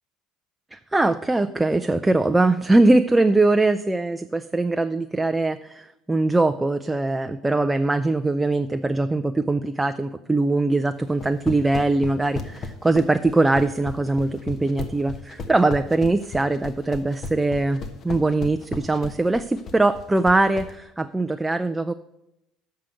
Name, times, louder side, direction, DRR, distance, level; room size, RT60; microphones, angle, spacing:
voice 1, 0.7-21.9, right 2 dB, 15° right, 9 dB, 0.4 m, -21 dB
sound 1, 11.1-20.7, left 4 dB, 45° left, 1.1 m, -34 dB
7.5 x 5.7 x 7.7 m, 0.88 s
hypercardioid pair, 70°, 0 cm